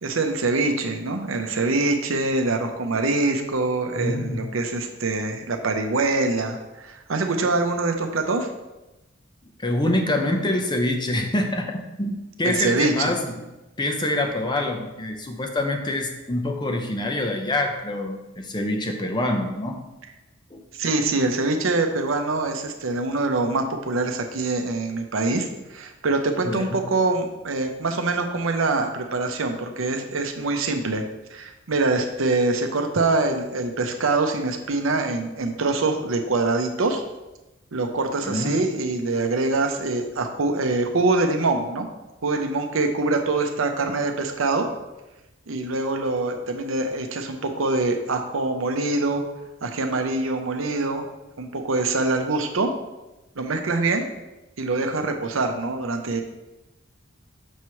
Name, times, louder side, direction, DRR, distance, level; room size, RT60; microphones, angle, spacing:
voice 1, 0.0-8.5 12.4-13.1 20.7-31.0 31.3-37.0 37.7-41.9 42.2-44.7 45.5-49.2 49.6-51.1 51.4-52.7 53.4-54.0 54.6-56.2, right 3 dB, 75° right, 4 dB, 0.7 m, -24 dB
voice 2, 4.0-4.4 9.6-13.3 13.8-19.8 20.5-20.6 26.4-26.8 38.2-38.6, left 1 dB, 20° left, 3 dB, 0.7 m, -25 dB
6.4 x 3.1 x 5.7 m, 1.0 s
head